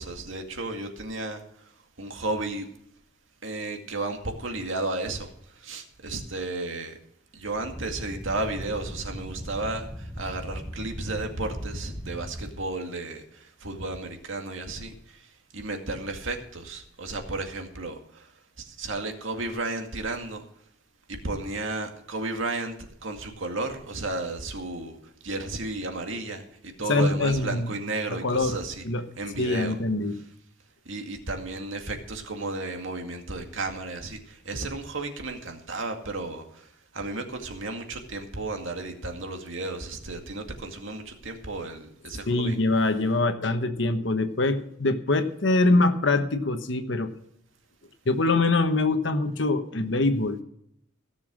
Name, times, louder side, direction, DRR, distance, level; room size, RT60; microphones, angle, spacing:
voice 1, 0.0-2.7 3.4-7.0 7.3-20.4 21.1-28.9 29.2-29.8 30.9-42.6, right 2 dB, 75° right, 2.1 m, -33 dB
sound 1, 7.4-12.5, equal, ahead, 1.2 m, -38 dB
voice 2, 26.9-27.7 28.1-28.6 28.8-29.0 29.4-30.2 42.3-47.1 48.0-50.4, left 2 dB, 65° left, 1.2 m, -24 dB
16.5 x 7.2 x 6.1 m
head